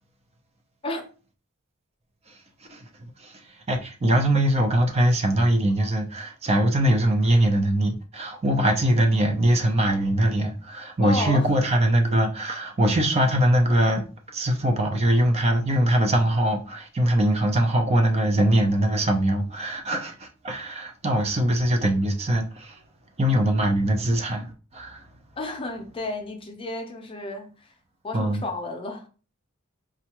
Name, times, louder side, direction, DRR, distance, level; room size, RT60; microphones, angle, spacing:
voice 1, 3.2-14.1 14.3-22.8 23.2-25.0 28.1-28.4, right 1 dB, 30° right, 0.5 m, -22 dB
voice 2, 11.0-11.5 25.4-27.7 28.0-29.1, left 2 dB, 25° left, 0.6 m, -32 dB
4.3 x 2.4 x 2.9 m
head